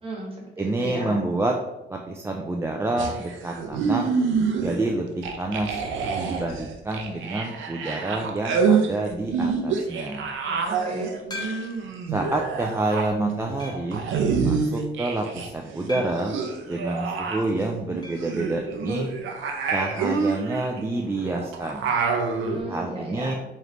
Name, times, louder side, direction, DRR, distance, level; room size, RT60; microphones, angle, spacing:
voice 1, 0.0-1.2 10.4-11.1 22.3-23.4, right 1 dB, 30° right, -2 dB, 1.4 m, -35 dB
voice 2, 0.6-1.5 1.9-4.1 4.6-5.8 6.3-10.2 12.1-14.0 14.4-16.3 16.7-19.1 19.7-21.9 22.7-23.3, right 2 dB, 15° right, 0 dB, 0.4 m, -28 dB
sound 1, 3.0-4.9 5.2-15.5 15.7-22.6, right 5 dB, 80° right, 0.6 m, -27 dB
sound 2, 11.3-12.0 12.6-12.7 13.6-14.0 15.9-16.4 18.0-18.3 18.6-18.7 18.9-19.0 21.0-21.1, left 3 dB, 20° left, 1.1 m, -38 dB
3.2 x 3.1 x 3.8 m, 0.97 s
cardioid pair, 90°, 20 cm